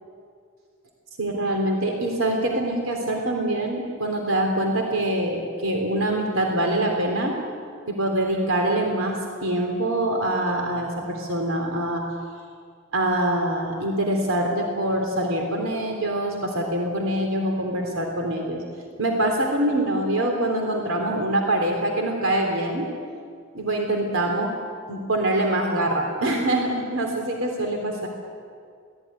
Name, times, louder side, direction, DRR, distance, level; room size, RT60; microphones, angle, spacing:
voice 1, 1.2-7.4 7.9-12.0 12.9-22.9 23.5-24.6 24.9-28.1, right 1 dB, 90° right, 1 dB, 3.4 m, -24 dB
23.0 x 18.0 x 9.8 m, 2.2 s
head